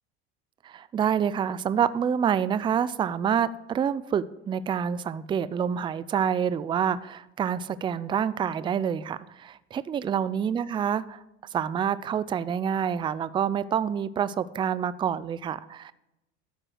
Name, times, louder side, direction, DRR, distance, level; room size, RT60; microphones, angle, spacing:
voice 1, 0.6-11.2 11.5-15.9, right 8 dB, 15° right, 17 dB, 0.3 m, -27 dB
12.0 x 4.8 x 6.4 m, 0.90 s
supercardioid pair, 105°, 30 cm